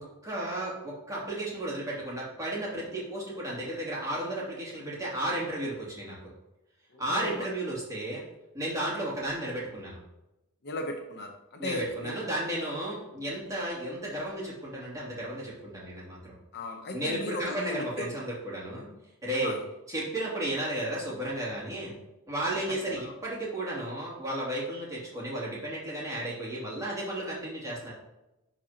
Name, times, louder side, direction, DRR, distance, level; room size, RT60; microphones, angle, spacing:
voice 1, 0.0-6.2 7.0-8.2 8.5-10.0 11.6-16.3 16.9-18.9 19.2-19.5 19.9-21.9 22.3-27.9, right 1 dB, 15° right, -6 dB, 2.6 m, -33 dB
voice 2, 6.9-7.5 10.6-12.1 16.5-18.1 19.4-19.6 22.9-23.1, left 2 dB, 50° left, 3 dB, 0.8 m, -36 dB
11.0 x 4.2 x 2.9 m, 0.95 s
head